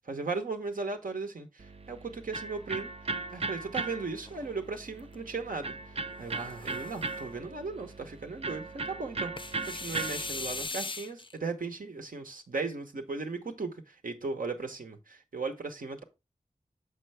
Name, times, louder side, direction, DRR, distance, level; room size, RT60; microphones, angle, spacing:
voice 1, 0.1-2.9 3.3-5.7 6.2-16.0, right 4 dB, 80° right, 0.9 m, -37 dB
Electric guitar, 1.6-10.7, right 3 dB, 45° right, 0.4 m, -38 dB
sound 1, 4.3-5.2 6.2-7.3 9.4-11.3, left 3 dB, 35° left, 0.4 m, -40 dB
6.5 x 5.0 x 3.3 m
wide cardioid pair, 50°, 14 cm